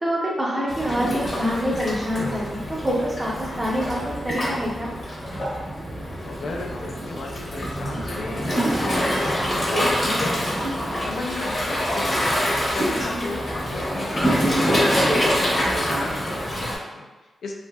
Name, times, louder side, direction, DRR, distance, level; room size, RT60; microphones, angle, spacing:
voice 1, 0.0-2.6 2.8-4.9 13.1-13.3, equal, 15° right, -3 dB, 0.6 m, -26 dB
Waves surf, 0.7-16.8, equal, 35° left, 0.8 m, -25 dB
voice 2, 6.2-10.8 11.0-12.4 12.7-17.5, left 3 dB, 85° left, 0 dB, 0.4 m, -35 dB
3.3 x 2.6 x 2.2 m, 1.2 s
wide cardioid pair, 145°, 0 cm